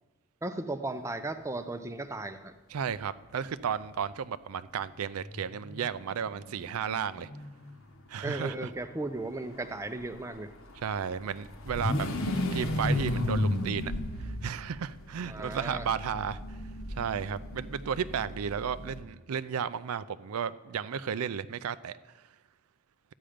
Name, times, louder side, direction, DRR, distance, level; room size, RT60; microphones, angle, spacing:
voice 1, 0.4-2.5 8.2-10.5 15.3-15.9, right 2 dB, 15° right, 9 dB, 0.5 m, -36 dB
voice 2, 2.7-7.3 8.1-8.7 10.8-12.1 12.5-13.9 14.2-16.6 16.9-22.2, right 7 dB, 80° right, 14 dB, 0.4 m, -34 dB
sound 1, 3.0-3.1 3.4-3.5 5.1-7.7 10.0-19.0, left 1 dB, 65° left, 1.1 m, -34 dB
13.0 x 8.8 x 5.1 m, 1.2 s
head